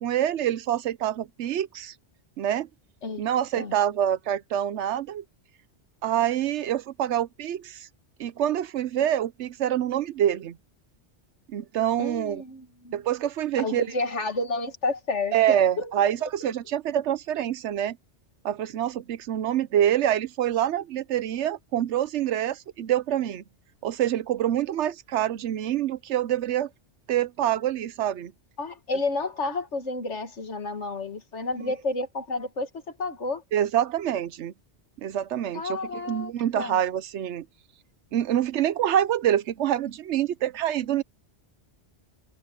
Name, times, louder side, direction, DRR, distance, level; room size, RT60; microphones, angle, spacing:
voice 1, 0.0-1.9 2.4-2.7 3.2-5.2 6.0-7.9 8.2-10.6 11.5-12.4 12.9-13.9 15.3-18.0 18.4-23.4 23.8-26.7 27.1-28.3 33.5-34.5 35.0-37.5 38.1-41.0, right 11 dB, 85° right, 1.0 m, -26 dB
voice 2, 12.0-13.0 13.6-16.1 28.6-33.4 35.5-36.8, left 3 dB, 85° left, 2.3 m, -31 dB
omnidirectional pair, 1.2 m